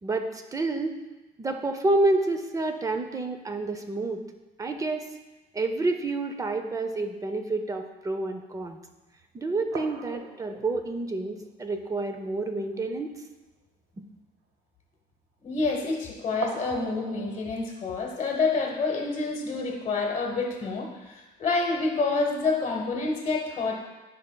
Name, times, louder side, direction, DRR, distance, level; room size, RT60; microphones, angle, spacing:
voice 1, 0.0-1.0 1.4-4.2 4.6-5.1 5.5-8.8 9.3-13.1, right 2 dB, 20° right, 6 dB, 0.5 m, -29 dB
sound 1, 8.6-8.7 9.2-9.3 9.7-12.0 12.3-12.4 12.7-12.9 16.4-17.4, right 5 dB, 80° right, 0.7 m, -40 dB
voice 2, 15.4-23.8, left 3 dB, 35° left, 0 dB, 1.0 m, -28 dB
9.9 x 4.8 x 2.2 m, 1.1 s
cardioid pair, 110°, 17 cm